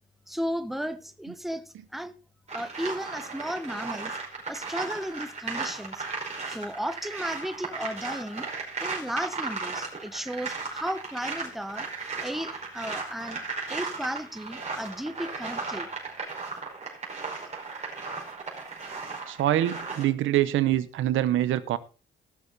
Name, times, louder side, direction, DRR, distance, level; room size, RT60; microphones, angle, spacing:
voice 1, 0.3-2.2 2.5-4.2 4.5-6.1 6.5-8.5 8.8-11.8 12.2-13.4 13.7-15.9, equal, ahead, 1.1 m, -34 dB
sound 1, 2.5-20.0, right 4 dB, 35° right, 5.0 m, -36 dB
voice 2, 19.3-21.8, right 13 dB, 80° right, 0.9 m, -25 dB
17.5 x 6.9 x 4.1 m
cardioid pair, 90°, 20 cm